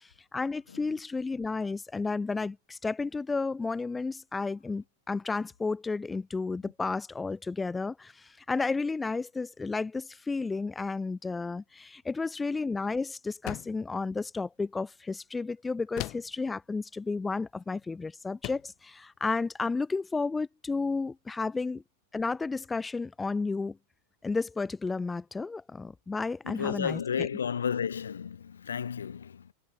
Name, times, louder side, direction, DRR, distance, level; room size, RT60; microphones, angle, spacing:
voice 1, 0.0-21.8 22.1-23.8 24.2-27.0, left 4 dB, 10° left, 0.8 m, -32 dB
sound 1, 13.5-13.9 16.0-16.4 17.7-17.9 18.4-18.8, left 22 dB, 40° left, 3.1 m, -38 dB
voice 2, 26.4-29.5, left 7 dB, 70° left, 3.1 m, -33 dB
figure-of-eight pair, 90°, 0 cm